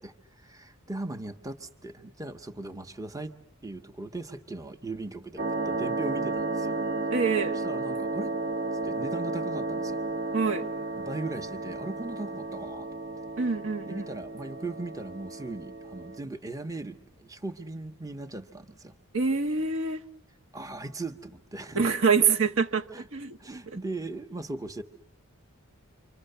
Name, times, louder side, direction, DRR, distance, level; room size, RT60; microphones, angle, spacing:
voice 1, 0.0-3.3 3.6-6.8 7.5-8.3 8.8-10.0 11.0-12.9 13.9-18.9 20.5-21.9 22.9-23.1 23.4-24.8, right 2 dB, 15° right, 7 dB, 1.0 m, -38 dB
sound 1, 5.4-16.2, right 3 dB, 40° right, 1.0 m, -33 dB
voice 2, 7.1-7.6 10.3-10.6 13.4-14.0 19.1-20.0 21.7-22.8 23.1-23.4 23.7-23.8, right 5 dB, 60° right, 5 dB, 1.3 m, -25 dB
29.0 x 25.0 x 6.8 m, 0.73 s
head